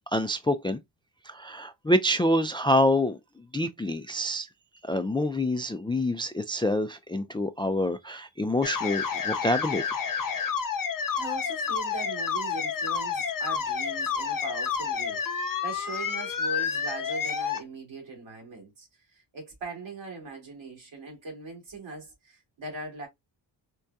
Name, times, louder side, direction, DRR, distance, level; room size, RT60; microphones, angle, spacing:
voice 1, 0.1-0.8 1.3-4.5 4.8-9.8, left 1 dB, 10° left, 0.3 m, -26 dB
sound 1, 8.6-17.6, left 6 dB, 45° left, 0.7 m, -30 dB
voice 2, 10.8-23.1, right 3 dB, 75° right, 2.3 m, -40 dB
4.6 x 2.2 x 2.6 m
cardioid pair, 55°, 47 cm